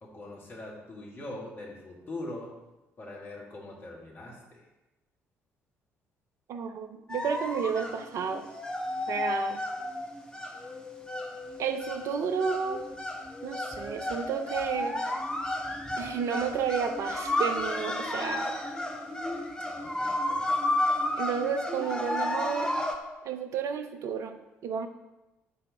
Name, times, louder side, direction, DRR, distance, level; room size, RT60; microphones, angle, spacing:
voice 1, 0.0-2.5 3.0-4.6 19.7-20.5, left 2 dB, 30° left, -3 dB, 1.9 m, -42 dB
voice 2, 6.5-8.5 9.1-9.6 11.6-12.8 13.4-15.0 16.0-18.5 21.2-22.8 23.2-24.9, right 7 dB, 50° right, 7 dB, 0.6 m, -31 dB
sound 1, 7.1-23.0, left 1 dB, 10° left, 0.8 m, -32 dB
5.5 x 4.1 x 5.3 m, 1.0 s
figure-of-eight pair, 45°, 7 cm